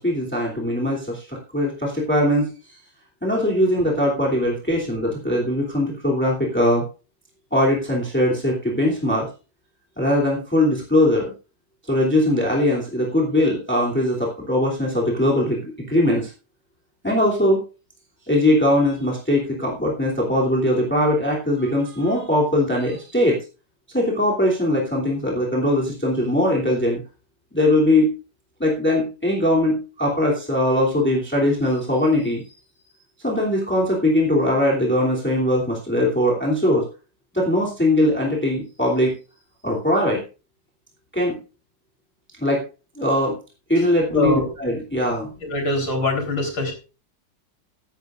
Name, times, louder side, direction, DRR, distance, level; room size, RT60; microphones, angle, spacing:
voice 1, 0.0-2.8 3.2-6.8 7.5-9.3 10.0-11.3 11.9-16.3 17.0-17.6 18.3-23.4 23.9-27.0 27.5-28.1 28.6-32.4 33.2-36.9 37.3-39.1 39.6-40.2 41.1-41.4 42.4-42.6 43.0-43.4 43.7-45.3, left 1 dB, 5° left, -3 dB, 2.7 m, -21 dB
voice 2, 44.1-44.5 45.4-46.7, left 2 dB, 80° left, 3 dB, 4.6 m, -23 dB
16.0 x 12.0 x 2.5 m, 0.33 s
omnidirectional pair, 2.0 m